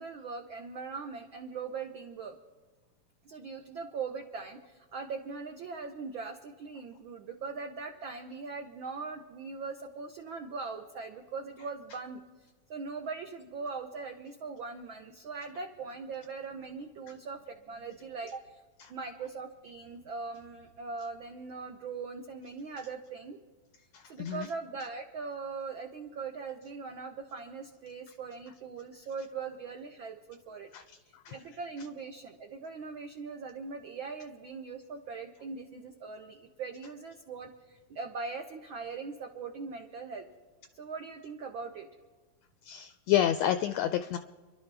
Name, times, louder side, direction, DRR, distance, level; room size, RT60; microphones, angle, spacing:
voice 1, 0.0-2.4 3.2-12.2 12.7-18.6 18.9-23.4 24.0-30.7 31.3-40.2 40.7-41.9, right 4 dB, 85° right, 4 dB, 1.1 m, -40 dB
voice 2, 23.9-24.5 30.7-31.4 42.6-44.2, left 11 dB, 80° left, 10 dB, 1.5 m, -30 dB
28.5 x 11.5 x 3.4 m, 1.4 s
omnidirectional pair, 3.5 m